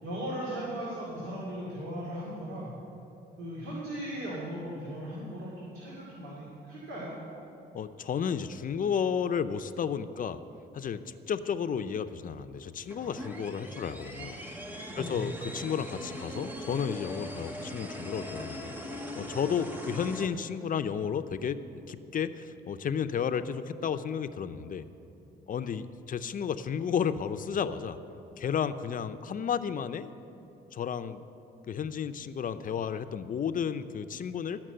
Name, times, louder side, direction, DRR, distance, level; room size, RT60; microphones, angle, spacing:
voice 1, 0.0-2.7 3.4-7.1 14.9-15.3, equal, 85° right, -6 dB, 2.4 m, -37 dB
voice 2, 7.7-10.4 10.7-14.3 15.0-24.9 25.5-28.0 28.4-30.1 30.7-31.2 31.7-34.6, left 7 dB, 45° left, 11 dB, 0.5 m, -32 dB
sound 1, 12.9-20.3, equal, 10° right, 1.2 m, -40 dB
12.5 x 6.0 x 7.7 m, 3.0 s
cardioid pair, 90°, 20 cm